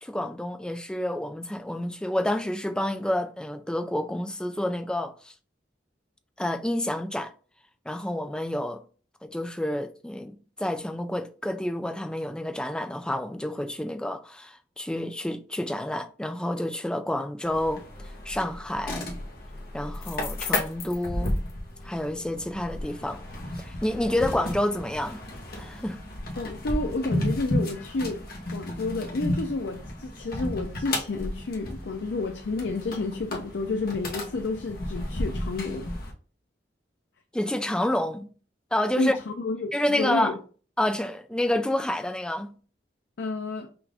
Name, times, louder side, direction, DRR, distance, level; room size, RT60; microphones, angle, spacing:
voice 1, 0.0-5.3 6.4-7.3 7.9-8.8 9.2-17.8 18.3-19.1 19.7-21.4 21.8-23.2 23.6-25.2 25.5-26.0 37.3-38.3 38.7-39.2 39.7-40.3 40.8-42.5, left 1 dB, 5° left, 0.4 m, -29 dB
sound 1, 17.4-36.1, left 1 dB, 55° left, 1.1 m, -33 dB
voice 2, 26.4-28.2 28.5-35.9 39.0-40.4 43.2-43.7, left 3 dB, 85° left, 0.5 m, -30 dB
5.8 x 2.5 x 3.4 m
head